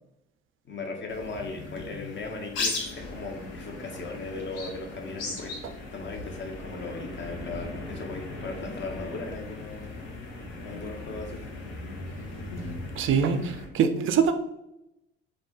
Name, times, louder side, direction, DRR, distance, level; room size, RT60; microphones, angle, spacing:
voice 1, 0.6-5.6 5.9-10.0 10.6-11.4, left 3 dB, 35° left, 3 dB, 0.7 m, -37 dB
sound 1, 1.1-13.6, left 2 dB, 75° left, 0.7 m, -38 dB
voice 2, 13.0-14.3, right 7 dB, 40° right, 8 dB, 0.4 m, -23 dB
2.3 x 2.2 x 3.7 m, 0.86 s
hypercardioid pair, 60°, 32 cm